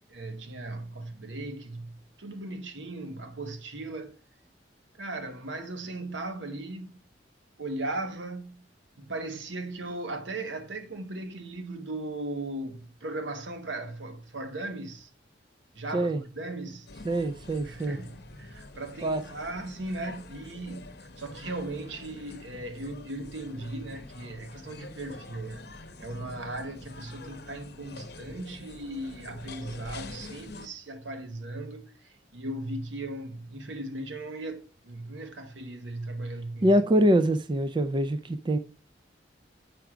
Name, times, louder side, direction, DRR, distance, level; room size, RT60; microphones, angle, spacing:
voice 1, 0.1-4.2 5.0-7.0 7.6-8.6 9.0-15.1 15.7-16.9 17.6-25.7 26.0-36.7, right 2 dB, 80° right, 1.1 m, -37 dB
sound 1, 16.9-30.7, left 2 dB, 60° left, 0.8 m, -46 dB
voice 2, 17.0-18.0 19.0-19.2 36.6-38.6, right 1 dB, 25° right, 0.4 m, -24 dB
8.0 x 4.6 x 4.9 m
head